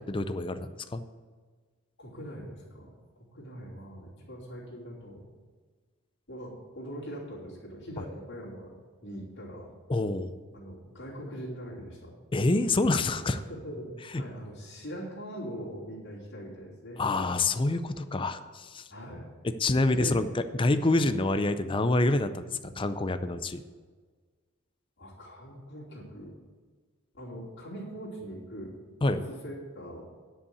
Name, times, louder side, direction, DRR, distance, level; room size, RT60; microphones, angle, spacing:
voice 1, 0.1-1.0 9.9-10.3 12.3-13.4 17.0-18.8 19.6-23.6 29.0-29.2, left 2 dB, 25° left, 11 dB, 0.4 m, -27 dB
voice 2, 2.0-5.3 6.3-8.7 9.0-9.7 10.5-12.1 13.2-17.0 18.9-19.3 19.8-20.2 20.9-21.1 25.0-26.4 27.1-30.0, equal, 60° left, -5 dB, 3.0 m, -42 dB
10.0 x 5.4 x 8.2 m, 1.5 s
head